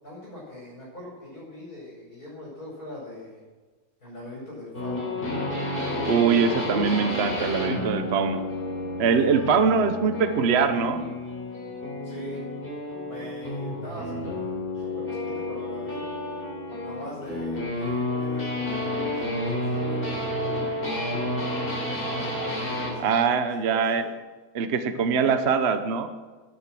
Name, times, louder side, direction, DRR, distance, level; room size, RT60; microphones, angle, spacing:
voice 1, 0.0-3.4 4.0-5.2 9.0-9.3 12.0-12.4 13.0-16.0 16.8-20.2 20.8-24.0, left 1 dB, 55° left, -6 dB, 6.0 m, -42 dB
sound 1, 4.7-23.0, left 1 dB, 30° left, 3.6 m, -30 dB
voice 2, 6.1-8.4 9.0-11.1 23.0-24.0 24.5-26.1, right 6 dB, 45° right, 9 dB, 0.9 m, -23 dB
12.0 x 9.9 x 7.5 m, 1.3 s
omnidirectional pair, 1.8 m